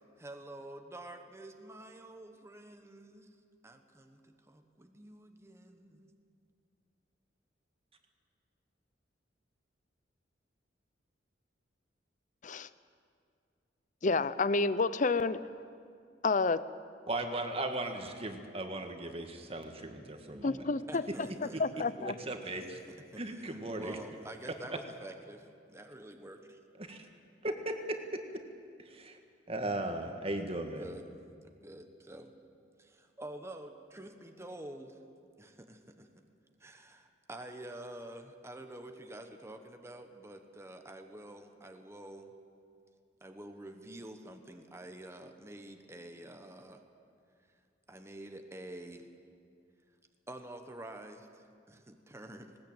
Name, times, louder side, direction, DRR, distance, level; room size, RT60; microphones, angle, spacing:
voice 1, 0.2-3.3 3.6-6.1 20.9-21.9 22.4-22.6 22.9-26.6 30.5-31.1 31.4-32.3 32.8-35.0 35.4-36.1 36.6-42.3 43.2-46.8 47.9-49.1 50.3-52.6, right 1 dB, 15° right, 5 dB, 1.3 m, -48 dB
voice 2, 14.0-15.4 16.2-16.6 20.4-21.0 21.4-22.1, left 3 dB, 45° left, 16 dB, 0.7 m, -29 dB
voice 3, 17.1-20.6 22.0-22.8 23.2-24.0 26.9-27.1 27.4-27.7 28.9-29.2 29.5-30.8, right 1 dB, 30° right, 5 dB, 1.9 m, -37 dB
20.0 x 19.0 x 8.9 m, 2.3 s
head